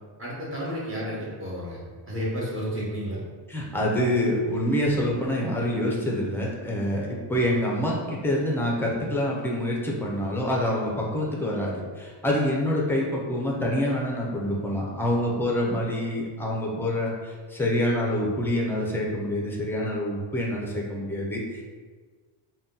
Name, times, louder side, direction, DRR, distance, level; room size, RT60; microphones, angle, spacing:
voice 1, 0.2-3.2, equal, 25° right, -6 dB, 0.8 m, -32 dB
voice 2, 3.5-21.6, left 1 dB, 5° left, -2 dB, 0.3 m, -26 dB
4.0 x 2.2 x 3.7 m, 1.5 s
cardioid pair, 165°, 49 cm